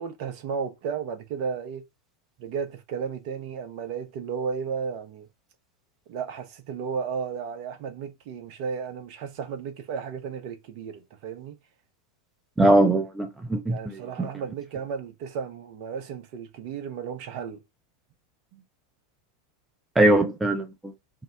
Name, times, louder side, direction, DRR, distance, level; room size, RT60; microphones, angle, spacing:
voice 1, 0.0-1.8 2.4-5.3 6.1-11.6 13.7-17.6 18.5-18.6 20.0-20.1, right 6 dB, 45° right, 0.6 m, -34 dB
voice 2, 12.6-14.3 20.0-20.9, right 1 dB, 5° right, 0.5 m, -21 dB
2.8 x 2.0 x 3.5 m
figure-of-eight pair, 90°, 0 cm